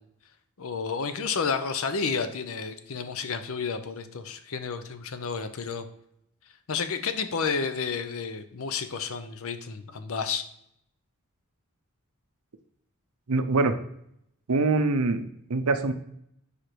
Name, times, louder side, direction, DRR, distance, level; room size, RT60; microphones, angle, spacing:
voice 1, 0.6-5.9 6.7-10.4, left 5 dB, 65° left, 10 dB, 0.6 m, -31 dB
voice 2, 13.3-13.7 14.5-15.9, right 3 dB, 80° right, 9 dB, 0.7 m, -24 dB
5.0 x 5.0 x 4.5 m, 0.73 s
head